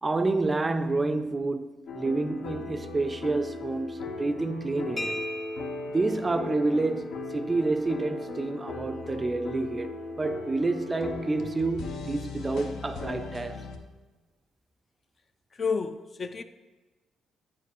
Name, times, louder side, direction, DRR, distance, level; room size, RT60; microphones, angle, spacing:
voice 1, 0.0-5.2 5.9-13.6, right 3 dB, 25° right, 0.4 m, -29 dB
sound 1, 1.9-13.8, left 4 dB, 75° left, 0.7 m, -39 dB
sound 2, 5.0-12.5, equal, 15° left, 0.8 m, -40 dB
voice 2, 15.5-16.4, left 5 dB, 40° left, 0.4 m, -30 dB
8.6 x 4.6 x 4.7 m
cardioid pair, 90°, 0 cm